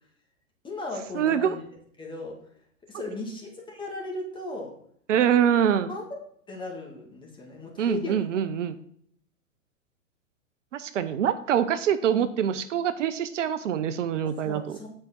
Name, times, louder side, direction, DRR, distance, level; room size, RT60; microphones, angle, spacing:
voice 1, 0.6-1.6 2.0-2.4 2.9-4.7 5.9-6.0 6.5-8.4 14.2-14.9, left 2 dB, 10° left, 0 dB, 2.0 m, -37 dB
voice 2, 1.1-1.6 5.1-5.9 7.8-8.7 10.7-14.8, right 9 dB, 70° right, 12 dB, 0.7 m, -24 dB
7.6 x 4.8 x 5.7 m, 0.65 s
hypercardioid pair, 120°, 39 cm